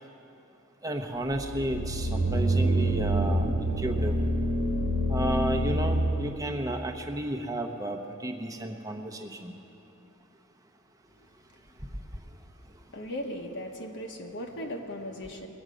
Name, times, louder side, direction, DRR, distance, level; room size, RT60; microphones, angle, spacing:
voice 1, 0.8-4.1 5.1-9.6, right 1 dB, 15° right, 3 dB, 0.9 m, -32 dB
sound 1, 1.3-6.4, right 1 dB, 70° right, 1.2 m, -27 dB
voice 2, 12.9-15.5, equal, 55° left, 1 dB, 1.1 m, -37 dB
21.5 x 8.0 x 5.1 m, 2.8 s
head